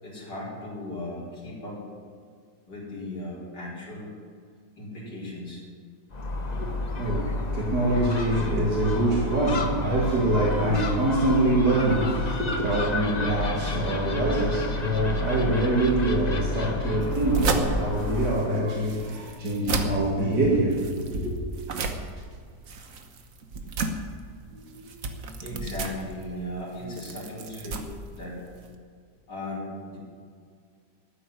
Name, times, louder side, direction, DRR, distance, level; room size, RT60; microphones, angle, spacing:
voice 1, 0.0-1.8 2.7-4.2 4.8-5.6 24.5-24.9 25.4-27.8 28.1-28.4 29.3-30.0, left 1 dB, 80° left, -6 dB, 5.1 m, -37 dB
Gull seagull, 6.1-18.5, left 2 dB, 30° left, 0.9 m, -31 dB
voice 2, 6.5-21.3, right 1 dB, 75° right, -6 dB, 3.2 m, -25 dB
sound 1, 17.0-28.7, right 3 dB, 55° right, 1.5 m, -33 dB
14.5 x 8.5 x 9.7 m, 2.1 s
omnidirectional pair, 1.8 m